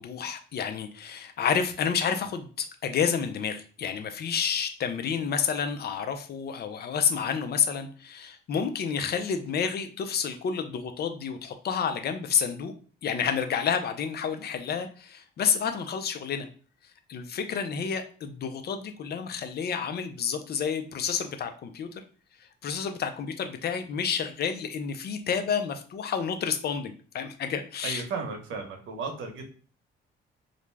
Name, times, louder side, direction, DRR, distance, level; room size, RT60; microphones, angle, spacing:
voice 1, 0.0-12.7 13.0-16.5 17.1-22.0 22.6-28.0, left 7 dB, 55° left, 7 dB, 0.5 m, -30 dB
voice 2, 27.8-29.5, right 4 dB, 80° right, 3 dB, 0.8 m, -34 dB
2.5 x 2.1 x 3.2 m, 0.40 s
cardioid pair, 90°, 20 cm